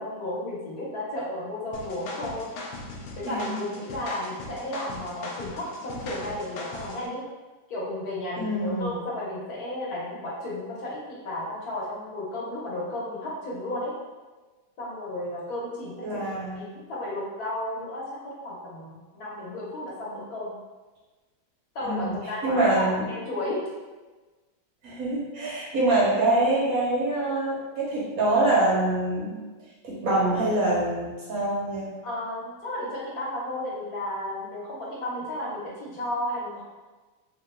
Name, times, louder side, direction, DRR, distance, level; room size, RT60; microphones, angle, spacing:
voice 1, 0.0-2.5 3.1-7.2 7.7-13.9 14.8-16.2 16.5-20.5 21.7-23.6 32.0-36.6, left 1 dB, 55° left, -6 dB, 1.3 m, -33 dB
sound 1, 1.7-7.1, left 2 dB, 90° left, 1.5 m, -39 dB
voice 2, 3.2-3.6 8.4-9.0 16.0-16.6 21.8-22.2 22.4-23.0 24.8-29.3 29.8-31.9, right 2 dB, 55° right, -6 dB, 1.1 m, -25 dB
3.8 x 3.7 x 2.2 m, 1.3 s
omnidirectional pair, 2.3 m